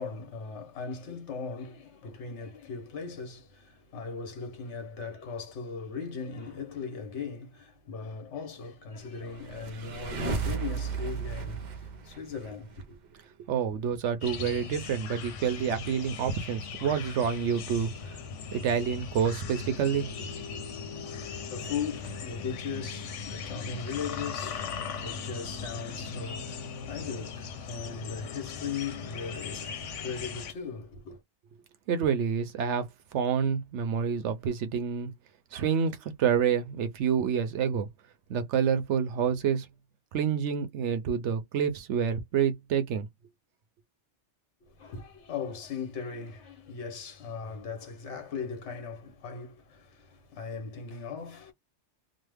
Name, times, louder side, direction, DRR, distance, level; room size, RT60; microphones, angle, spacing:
voice 1, 0.0-13.0 20.9-31.2 44.6-51.5, left 5 dB, 70° left, 1.3 m, -38 dB
sound 1, 9.2-12.8, right 5 dB, 50° right, 0.5 m, -34 dB
voice 2, 13.5-17.9 18.5-20.1 31.9-32.8 33.1-35.1 35.5-37.9 38.3-39.7 40.1-43.1, right 7 dB, 75° right, 0.9 m, -28 dB
sound 2, 14.2-30.5, left 5 dB, 85° left, 1.0 m, -39 dB
3.0 x 2.0 x 3.3 m
omnidirectional pair, 1.2 m